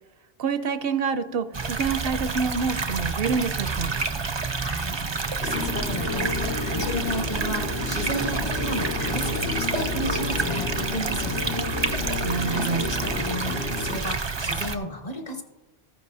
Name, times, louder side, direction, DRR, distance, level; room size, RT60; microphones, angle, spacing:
voice 1, 0.4-3.9 12.2-12.8, right 5 dB, 70° right, 10 dB, 0.8 m, -27 dB
sound 1, 1.5-14.8, right 4 dB, 35° right, 0.5 m, -29 dB
voice 2, 4.6-11.7 12.1-15.4, equal, 40° left, 4 dB, 1.2 m, -34 dB
sound 2, 5.4-14.0, left 4 dB, 90° left, 1.0 m, -31 dB
14.0 x 10.0 x 2.6 m, 1.1 s
omnidirectional pair, 1.1 m